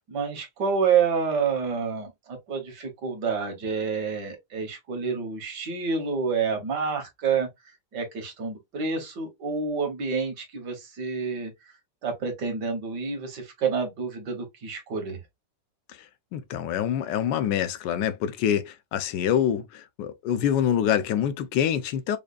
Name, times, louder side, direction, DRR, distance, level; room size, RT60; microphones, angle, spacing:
voice 1, 0.0-7.5 7.9-11.5 12.0-15.2, right 5 dB, 70° right, 1.9 m, -28 dB
voice 2, 16.3-19.6 20.0-22.2, left 9 dB, 80° left, 1.3 m, -25 dB
5.0 x 2.4 x 2.4 m
omnidirectional pair, 1.9 m